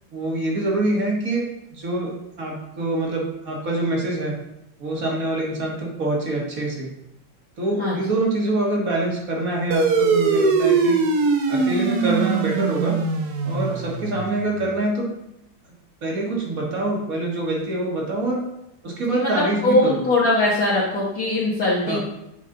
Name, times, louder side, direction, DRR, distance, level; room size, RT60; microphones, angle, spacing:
voice 1, 0.1-4.3 4.8-6.9 7.6-11.0 11.5-13.0 13.4-15.1 16.0-18.4 18.8-20.0 21.9-22.0, right 2 dB, 45° right, -2 dB, 1.8 m, -25 dB
sound 1, 9.7-14.6, right 4 dB, 60° right, 1.1 m, -21 dB
voice 2, 19.1-22.0, left 2 dB, 50° left, -7 dB, 1.7 m, -21 dB
8.0 x 5.2 x 3.8 m, 0.83 s
omnidirectional pair, 2.3 m